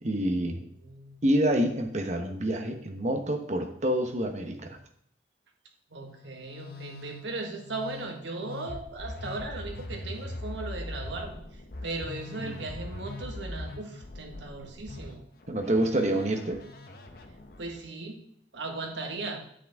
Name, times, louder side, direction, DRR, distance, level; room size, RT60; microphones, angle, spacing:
voice 1, 0.0-0.6 1.2-4.8 12.4-12.5 15.5-16.6, right 1 dB, 40° right, 5 dB, 1.1 m, -27 dB
voice 2, 0.8-1.2 5.9-15.2 17.6-18.2 18.5-19.4, right 3 dB, 80° right, 2 dB, 1.6 m, -37 dB
Musical instrument, 6.1-17.8, left 2 dB, 55° left, 0.9 m, -42 dB
9.8 x 7.9 x 3.6 m, 0.69 s
head